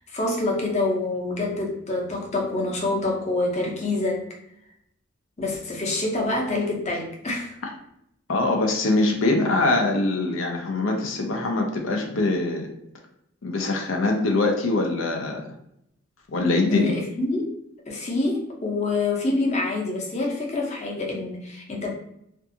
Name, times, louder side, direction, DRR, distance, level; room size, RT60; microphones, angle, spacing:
voice 1, 0.0-4.2 5.4-7.5 16.7-17.5 17.9-21.9, left 2 dB, 35° left, -1 dB, 0.7 m, -26 dB
voice 2, 8.3-12.7 13.4-15.4 16.3-16.9, left 2 dB, 85° left, 2 dB, 0.5 m, -23 dB
2.6 x 2.3 x 2.6 m, 0.76 s
head